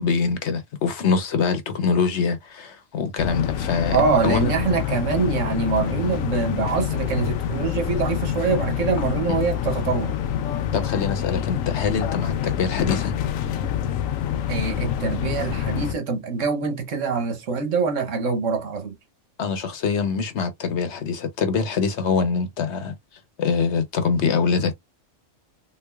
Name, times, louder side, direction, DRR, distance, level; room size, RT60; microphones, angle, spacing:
voice 1, 0.0-4.0 4.2-4.5 10.7-13.1 19.4-22.9 23.4-24.7, left 5 dB, 65° left, 1.1 m, -24 dB
sound 1, 3.2-15.9, left 9 dB, 90° left, 1.0 m, -26 dB
voice 2, 3.9-10.2 14.5-18.9, right 5 dB, 70° right, 1.4 m, -24 dB
3.7 x 3.2 x 2.3 m
omnidirectional pair, 1.3 m